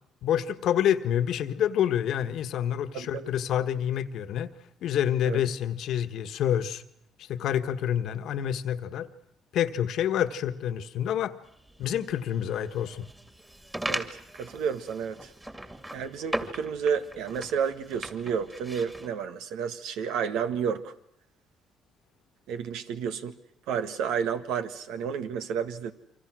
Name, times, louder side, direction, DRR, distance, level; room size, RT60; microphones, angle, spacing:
voice 1, 0.2-4.5 4.8-6.8 7.2-9.1 9.5-11.3 11.8-13.1, left 10 dB, 70° left, 1.4 m, -27 dB
voice 2, 2.9-3.3 5.2-5.4 13.9-15.3 15.9-20.9 22.5-23.4 23.7-25.9, right 7 dB, 85° right, 1.7 m, -31 dB
sound 1, 11.4-19.1, right 1 dB, 15° right, 2.5 m, -39 dB
28.5 x 25.0 x 6.3 m
cardioid pair, 100°, 0 cm